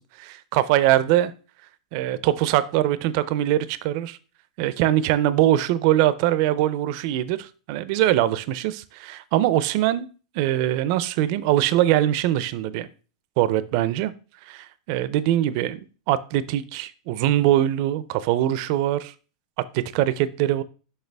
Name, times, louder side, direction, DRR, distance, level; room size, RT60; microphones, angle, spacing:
voice 1, 0.5-1.3 1.9-4.2 4.6-10.1 10.3-12.9 13.4-14.1 14.5-15.8 16.1-19.1 19.7-20.6, right 13 dB, 45° right, 0.5 m, -22 dB
6.6 x 5.5 x 3.4 m
supercardioid pair, 160°, 3 cm